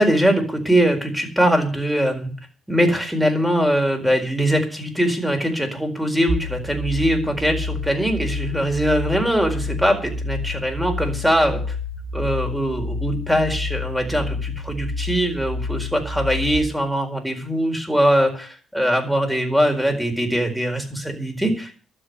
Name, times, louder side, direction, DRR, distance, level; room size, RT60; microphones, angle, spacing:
voice 1, 0.0-2.3 2.7-11.8 12.1-21.7, equal, 5° right, 4 dB, 4.6 m, -21 dB
sound 1, 6.3-16.6, left 3 dB, 65° right, 4.4 m, -29 dB
12.5 x 7.7 x 9.7 m, 0.40 s
cardioid pair, 90°, 0 cm